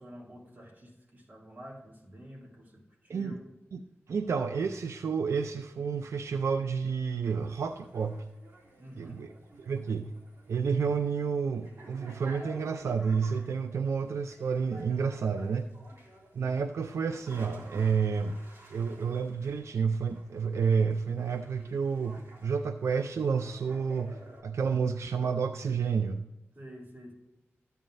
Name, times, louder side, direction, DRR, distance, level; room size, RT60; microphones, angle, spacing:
voice 1, 0.0-3.5 8.8-9.2 26.5-27.1, equal, 45° right, -3 dB, 2.9 m, -48 dB
voice 2, 4.1-8.2 9.0-9.3 9.6-10.1 10.5-15.7 16.3-18.4 18.7-26.2, right 6 dB, 90° right, 8 dB, 0.4 m, -30 dB
sound 1, 7.4-24.4, right 1 dB, 65° right, 2.4 m, -53 dB
13.5 x 9.1 x 2.6 m, 0.96 s
wide cardioid pair, 105°, 5 cm